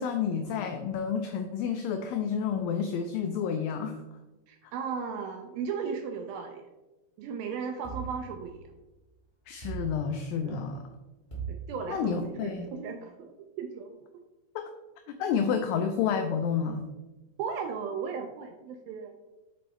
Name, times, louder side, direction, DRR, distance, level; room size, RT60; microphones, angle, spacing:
voice 1, 0.0-4.0 9.5-10.9 11.9-12.7 14.6-14.7 15.2-16.8, left 7 dB, 90° left, 6 dB, 2.0 m, -30 dB
voice 2, 4.5-6.7 7.2-8.6 10.4-10.6 11.5-14.0 17.4-19.1, right 6 dB, 80° right, 4 dB, 2.2 m, -36 dB
sound 1, 7.8-8.9 9.6-10.7 11.3-12.4, right 5 dB, 70° left, 0.4 m, -40 dB
7.7 x 4.5 x 4.2 m, 1.1 s
omnidirectional pair, 4.6 m